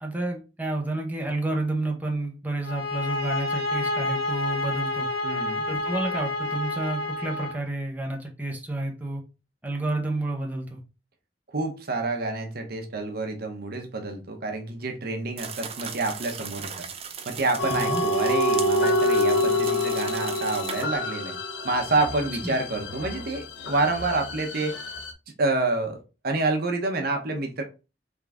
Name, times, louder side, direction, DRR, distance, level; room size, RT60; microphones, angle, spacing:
voice 1, 0.0-5.1 5.7-9.2 9.6-10.8 17.7-18.0 22.4-22.5, right 2 dB, 10° right, 0.9 m, -30 dB
sound 1, 2.6-7.6, left 2 dB, 60° left, 2.3 m, -29 dB
voice 2, 5.2-5.6 11.5-16.9 17.2-21.4 21.6-24.8 25.4-26.0 26.2-27.6, right 2 dB, 60° right, 0.9 m, -28 dB
sound 2, 15.4-20.8, right 6 dB, 35° right, 0.6 m, -38 dB
sound 3, 17.6-25.1, left 1 dB, 80° left, 0.7 m, -27 dB
3.7 x 3.6 x 3.5 m
head